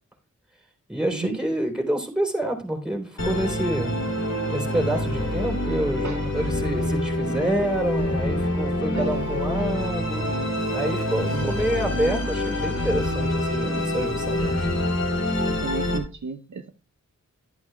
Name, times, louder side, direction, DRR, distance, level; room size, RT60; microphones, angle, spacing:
voice 1, 0.9-3.9 4.5-10.4 10.7-14.7, right 1 dB, ahead, 3.7 m, -27 dB
Musical instrument, 3.2-16.0, left 1 dB, 60° left, 2.8 m, -26 dB
voice 2, 8.9-9.3 11.3-11.5 15.5-16.7, right 4 dB, 75° right, 0.9 m, -33 dB
11.5 x 11.0 x 2.3 m
wide cardioid pair, 80°, 30 cm